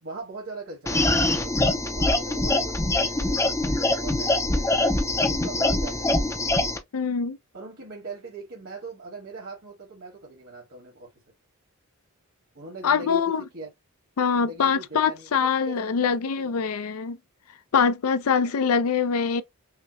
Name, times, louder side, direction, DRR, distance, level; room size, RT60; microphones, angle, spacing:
voice 1, 0.0-6.3 7.5-11.1 12.5-13.7 14.3-16.7 18.3-18.5, right 2 dB, 65° right, 1.6 m, -41 dB
sound 1, 0.9-6.8, left 2 dB, 15° left, 0.5 m, -23 dB
voice 2, 6.9-7.4 12.8-13.4 14.2-17.2 17.7-19.4, left 6 dB, 85° left, 0.5 m, -23 dB
5.7 x 2.1 x 2.8 m
head